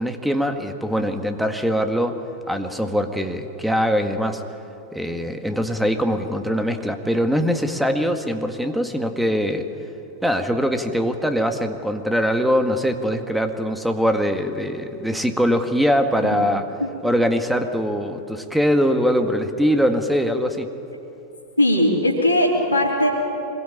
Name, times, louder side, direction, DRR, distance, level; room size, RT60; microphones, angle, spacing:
voice 1, 0.0-2.2 2.5-4.4 4.9-9.7 10.2-16.7 17.0-20.7, equal, ahead, 6 dB, 1.8 m, -22 dB
voice 2, 21.6-23.1, left 1 dB, 90° right, -6 dB, 3.3 m, -19 dB
25.0 x 22.0 x 8.8 m, 3.0 s
figure-of-eight pair, 90°, 0 cm